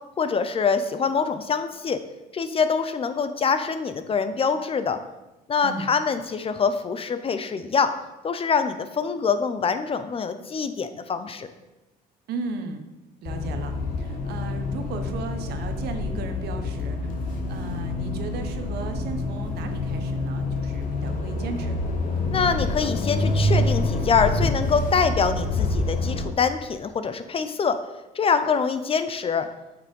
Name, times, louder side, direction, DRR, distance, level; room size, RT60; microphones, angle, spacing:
voice 1, 0.2-2.0 2.3-5.0 5.5-7.9 8.2-11.5 22.3-27.8 28.1-29.5, left 5 dB, 35° left, 10 dB, 0.7 m, -24 dB
voice 2, 12.3-12.8 13.2-21.8, right 4 dB, 75° right, 7 dB, 1.2 m, -36 dB
sound 1, 13.3-26.2, left 2 dB, 55° left, 1.6 m, -27 dB
8.3 x 5.9 x 5.4 m, 1.0 s
cardioid pair, 110°, 17 cm